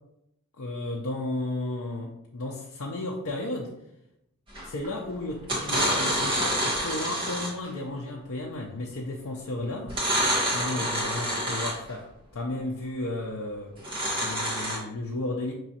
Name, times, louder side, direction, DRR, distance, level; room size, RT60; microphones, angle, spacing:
voice 1, 0.6-3.7 4.6-13.7 14.2-15.5, left 2 dB, 70° left, -1 dB, 0.5 m, -34 dB
sound 1, 4.6-4.9 5.4-7.7 9.9-11.9 13.8-14.8, equal, 25° right, 1.3 m, -27 dB
5.7 x 3.0 x 2.8 m, 0.82 s
head